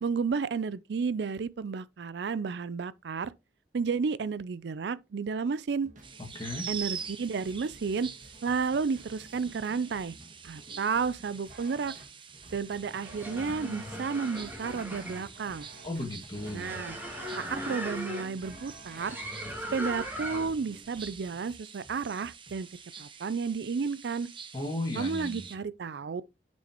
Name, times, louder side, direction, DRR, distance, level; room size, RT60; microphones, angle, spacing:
voice 1, 0.0-3.3 3.7-5.9 6.7-8.1 8.4-10.2 10.4-11.9 12.5-15.7 16.5-17.0 17.4-19.2 19.7-22.7 23.0-24.3 24.9-26.3, right 5 dB, 65° right, 0.4 m, -32 dB
sound 1, 5.8-23.1, right 1 dB, 45° right, 1.8 m, -52 dB
sound 2, 6.0-25.6, right 7 dB, 30° right, 0.8 m, -46 dB
voice 2, 6.4-6.7 15.8-16.8 24.5-25.5, left 1 dB, 25° left, 1.9 m, -35 dB
sound 3, 12.9-20.7, equal, 10° right, 2.4 m, -39 dB
8.4 x 6.3 x 2.9 m
head